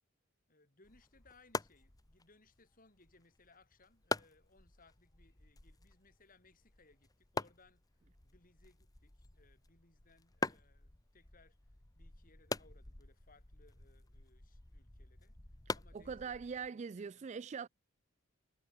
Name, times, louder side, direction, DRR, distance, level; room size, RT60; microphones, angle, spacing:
voice 1, 0.5-7.8 8.2-15.4 15.7-17.3, left 3 dB, 40° left, 5.2 m, -67 dB
sound 1, 0.8-16.7, left 3 dB, 20° left, 1.0 m, -45 dB
voice 2, 15.9-17.7, right 6 dB, 35° right, 0.3 m, -42 dB
head